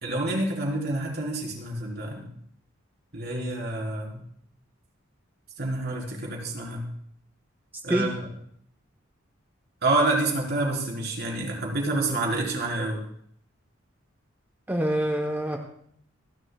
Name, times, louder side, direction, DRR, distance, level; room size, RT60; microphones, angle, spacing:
voice 1, 0.0-2.3 3.1-4.2 5.6-6.8 7.8-8.3 9.8-13.0, right 2 dB, 55° right, -1 dB, 4.1 m, -28 dB
voice 2, 14.7-15.6, equal, 10° right, 1 dB, 1.0 m, -25 dB
28.0 x 11.5 x 2.4 m, 0.65 s
head